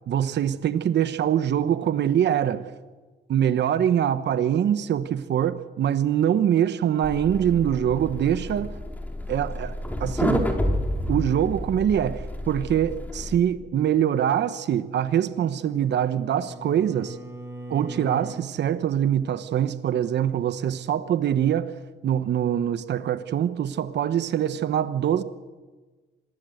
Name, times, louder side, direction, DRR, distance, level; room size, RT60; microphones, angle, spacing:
voice 1, 0.1-2.7 3.3-8.8 9.3-9.7 10.0-10.5 11.1-17.2 17.7-21.7 22.0-25.2, right 10 dB, 60° right, 1.0 m, -24 dB
sound 1, 7.0-13.4, left 1 dB, 10° left, 4.1 m, -30 dB
Bowed string instrument, 15.4-18.5, right 1 dB, 15° right, 5.2 m, -40 dB
26.5 x 20.0 x 8.0 m
cardioid pair, 90°, 20 cm